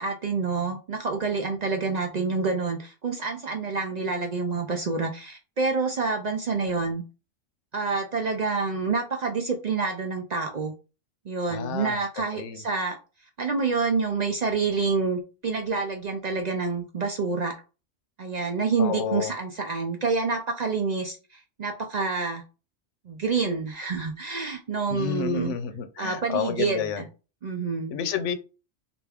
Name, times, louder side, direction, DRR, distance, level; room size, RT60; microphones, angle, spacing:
voice 1, 0.0-7.0 7.7-10.7 11.3-13.0 13.4-17.5 18.2-22.4 23.1-25.6 26.0-27.1 27.4-28.0, right 4 dB, 55° right, 0.5 m, -27 dB
voice 2, 11.5-12.0 12.3-12.6 18.8-19.3 24.9-27.0 27.9-28.3, left 8 dB, 85° left, 0.9 m, -30 dB
3.3 x 2.5 x 3.4 m
omnidirectional pair, 1.2 m